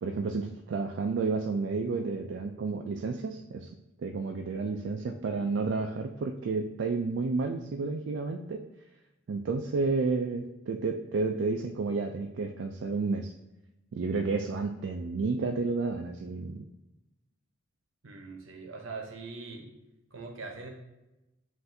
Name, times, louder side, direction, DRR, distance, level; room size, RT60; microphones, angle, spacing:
voice 1, 0.0-3.7 4.0-8.6 9.3-13.3 13.9-16.6, right 4 dB, 65° right, 3 dB, 0.3 m, -31 dB
voice 2, 18.0-19.7 20.1-20.7, right 3 dB, 85° right, 2 dB, 0.8 m, -42 dB
7.7 x 2.6 x 2.6 m, 0.97 s
head